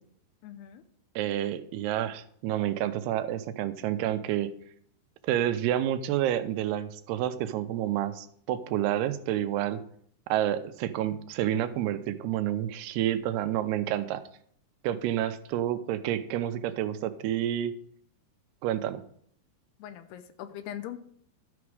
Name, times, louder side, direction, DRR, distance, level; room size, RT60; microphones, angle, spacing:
voice 1, 0.4-0.8 19.8-21.0, left 11 dB, 80° left, 10 dB, 2.6 m, -41 dB
voice 2, 1.2-4.5 5.2-9.8 10.3-14.2 14.8-17.7 18.6-19.0, right 12 dB, 85° right, 10 dB, 2.6 m, -29 dB
12.5 x 6.0 x 4.8 m, 0.64 s
omnidirectional pair, 4.8 m